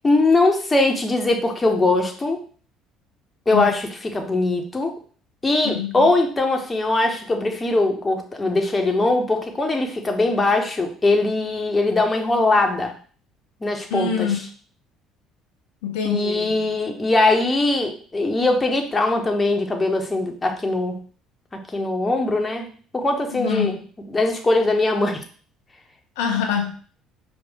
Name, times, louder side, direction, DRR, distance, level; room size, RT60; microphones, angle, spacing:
voice 1, 0.0-2.4 3.5-4.9 5.4-12.9 13.6-14.4 16.0-21.0 21.5-23.8 24.1-25.2, left 2 dB, 20° left, 4 dB, 1.0 m, -21 dB
voice 2, 5.6-6.1 13.9-14.4 15.8-16.5 23.3-23.7 26.2-26.9, left 7 dB, 75° left, 2 dB, 0.7 m, -25 dB
5.0 x 2.6 x 3.6 m, 0.43 s
hypercardioid pair, 55°, 0 cm